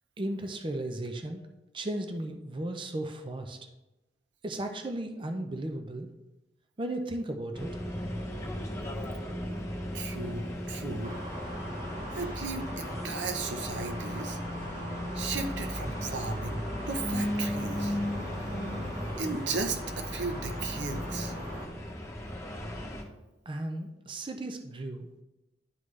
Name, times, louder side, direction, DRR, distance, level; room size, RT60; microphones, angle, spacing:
voice 1, 0.2-1.4 1.7-3.6 4.4-6.1 6.8-7.8 23.5-25.1, right 1 dB, 30° right, 5 dB, 0.6 m, -35 dB
sound 1, 7.5-23.0, equal, 15° left, 1.0 m, -36 dB
voice 2, 9.9-11.2 12.1-14.4 15.1-18.0 18.8-21.3, right 4 dB, 90° right, 6 dB, 0.7 m, -36 dB
sound 2, 11.0-21.7, right 1 dB, 55° right, 1.7 m, -42 dB
11.0 x 3.8 x 3.2 m, 0.98 s
head